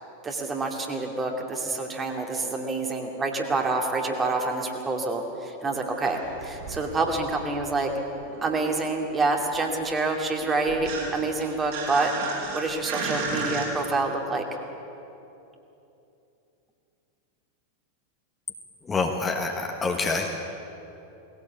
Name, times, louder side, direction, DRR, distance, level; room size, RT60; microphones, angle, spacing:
voice 1, 0.2-7.9 8.4-12.1 12.5-14.4, right 3 dB, 20° right, 2 dB, 2.5 m, -27 dB
sound 1, 5.9-7.8 8.0-13.7, right 4 dB, 50° right, 6.2 m, -35 dB
voice 2, 18.9-20.3, left 3 dB, 15° left, 2 dB, 1.7 m, -26 dB
19.5 x 17.0 x 8.4 m, 2.9 s
figure-of-eight pair, 90°, 0 cm